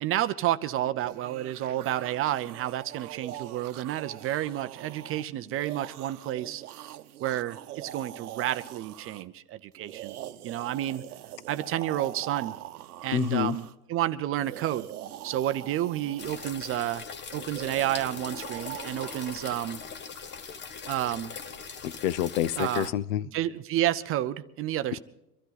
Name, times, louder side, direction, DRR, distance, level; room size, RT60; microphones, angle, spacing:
voice 1, 0.0-6.6 7.2-10.2 10.4-11.0 11.5-12.6 13.0-14.9 15.2-17.1 17.3-19.8 20.9-21.3 22.6-22.9 23.3-25.0, right 13 dB, 30° right, 12 dB, 0.5 m, -30 dB
sound 1, 0.7-9.2 9.8-13.7 14.3-16.5 17.3-19.7, right 12 dB, 85° right, 0.9 m, -43 dB
voice 2, 13.1-13.6 21.8-23.2, left 12 dB, 65° left, 20 dB, 0.7 m, -27 dB
sound 2, 16.2-22.9, left 5 dB, 25° left, 0.9 m, -41 dB
24.0 x 13.0 x 4.0 m, 0.89 s
hypercardioid pair, 110°, 43 cm